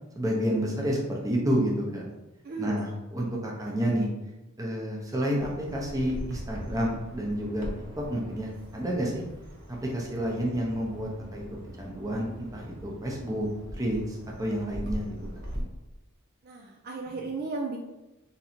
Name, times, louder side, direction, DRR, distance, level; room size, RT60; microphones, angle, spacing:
voice 1, 0.1-2.1 2.6-4.1 4.6-7.7 8.0-9.2 9.8-11.4 11.8-15.1, equal, 15° right, -2 dB, 0.8 m, -29 dB
voice 2, 2.4-2.8 16.4-17.8, right 3 dB, 45° right, 0 dB, 0.4 m, -34 dB
Bird vocalization bird call bird song, 5.4-15.6, equal, 60° right, 1.0 m, -41 dB
3.8 x 2.8 x 4.2 m, 0.99 s
head